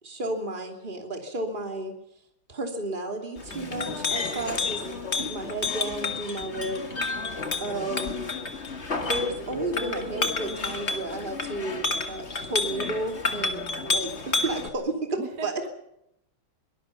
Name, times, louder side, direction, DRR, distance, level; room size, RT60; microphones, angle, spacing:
voice 1, 0.0-1.9 2.5-4.8 5.1-6.8 7.6-8.2 9.0-13.6 13.9-15.5, right 2 dB, 25° right, 4 dB, 3.0 m, -32 dB
Chink clink, 3.4-14.7, left 3 dB, 35° left, 2.1 m, -30 dB
voice 2, 3.5-4.5 13.3-14.0 15.2-15.7, right 5 dB, 55° right, 5 dB, 2.6 m, -42 dB
23.0 x 19.5 x 7.0 m, 0.80 s
omnidirectional pair, 2.2 m